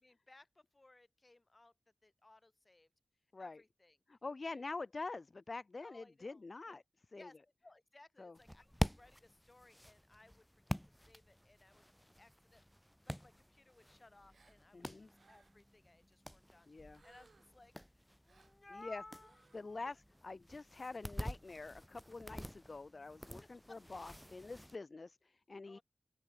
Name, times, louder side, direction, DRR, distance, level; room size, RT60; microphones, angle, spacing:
voice 1, 0.0-1.7 2.0-2.9 3.4-4.0 4.5-4.6 5.8-6.8 7.1-7.4 7.6-10.8 11.1-11.8 12.2-20.0 23.4-23.8 25.6-25.8, left 2 dB, 30° left, 5.5 m, -61 dB
voice 2, 4.1-6.8 7.1-7.3 8.2-8.4 14.7-15.1 16.7-17.0 18.7-19.0 19.5-20.0 20.2-25.8, left 3 dB, 50° left, 0.4 m, -46 dB
sound 1, 8.3-24.8, equal, 5° left, 1.7 m, -47 dB
Gasp, 14.3-14.6 15.1-15.7 16.9-17.6 18.2-18.6 19.1-19.6, right 4 dB, 75° right, 5.0 m, -68 dB
open air
wide cardioid pair, 85°, 0 cm